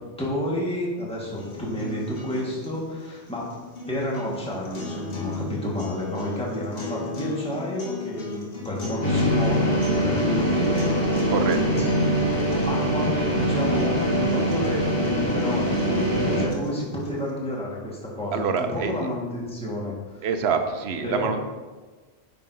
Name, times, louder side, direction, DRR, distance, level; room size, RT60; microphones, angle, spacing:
voice 1, 0.2-3.5 3.9-11.7 12.5-20.2 21.0-21.3, left 1 dB, 5° left, -5 dB, 1.4 m, -30 dB
sound 1, 1.3-17.3, left 3 dB, 60° left, 1.4 m, -37 dB
sound 2, 9.0-16.5, equal, 25° left, 1.3 m, -23 dB
voice 2, 18.3-18.9 20.2-21.4, right 6 dB, 70° right, 7 dB, 0.9 m, -25 dB
9.0 x 5.9 x 2.7 m, 1.3 s
omnidirectional pair, 1.2 m